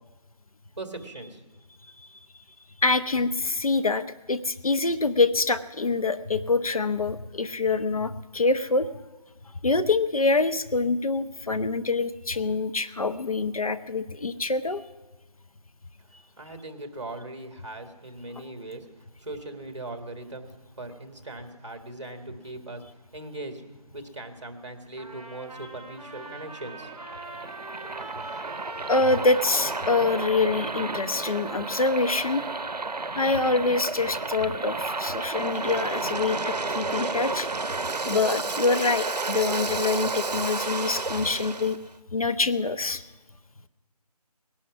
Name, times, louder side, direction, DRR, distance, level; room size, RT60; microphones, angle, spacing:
voice 1, 0.8-1.4 16.4-18.9 19.2-22.8 23.1-23.6 23.9-26.9, right 2 dB, 45° right, 6 dB, 1.8 m, -39 dB
voice 2, 2.8-8.9 9.6-14.8 28.9-32.4 33.2-37.5 38.0-41.8 42.1-43.0, left 3 dB, 60° left, 12 dB, 0.7 m, -25 dB
Trumpet, 25.0-32.7, right 2 dB, 10° right, 1.5 m, -43 dB
Waves surf, 26.0-41.8, right 3 dB, 85° right, 0.8 m, -32 dB
19.5 x 11.5 x 6.0 m, 1.2 s
figure-of-eight pair, 175°, 20 cm